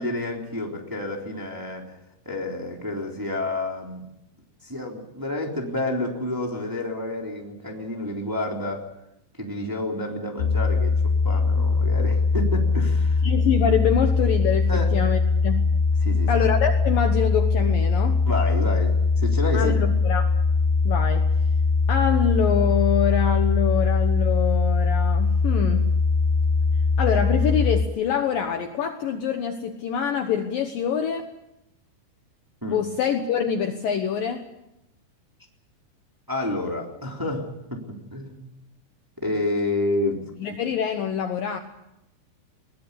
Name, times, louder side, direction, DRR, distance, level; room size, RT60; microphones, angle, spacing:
voice 1, 0.0-1.8 2.2-4.0 4.6-8.9 9.4-10.9 11.2-13.2 14.7-14.9 16.0-16.3 18.2-19.8 32.6-32.8 36.3-38.5 39.2-40.2, left 1 dB, 5° right, 0 dB, 2.9 m, -29 dB
sound 1, 10.4-27.9, left 4 dB, 85° left, 3.4 m, -21 dB
voice 2, 13.2-15.8 16.3-18.2 19.5-20.3 20.8-21.3 21.9-25.9 27.0-31.3 32.7-34.5 40.4-41.6, left 8 dB, 65° left, 6 dB, 2.5 m, -25 dB
22.0 x 20.0 x 8.4 m, 0.87 s
omnidirectional pair, 5.1 m